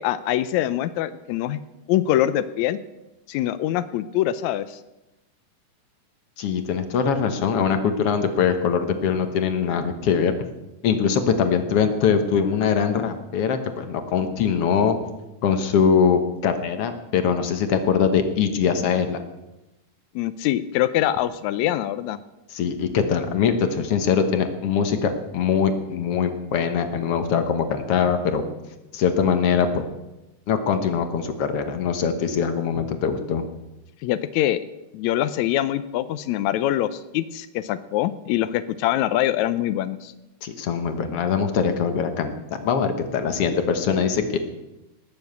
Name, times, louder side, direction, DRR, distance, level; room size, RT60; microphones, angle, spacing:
voice 1, 0.0-1.6 1.9-2.8 3.3-4.8 20.2-22.2 34.0-34.6 34.9-40.1, left 13 dB, 85° left, 13 dB, 1.6 m, -24 dB
voice 2, 6.4-10.4 10.8-15.0 15.4-19.2 22.5-28.4 28.9-29.8 30.5-33.4 40.4-44.4, left 6 dB, 65° left, 8 dB, 1.6 m, -22 dB
19.0 x 7.1 x 8.1 m, 0.98 s
omnidirectional pair, 3.9 m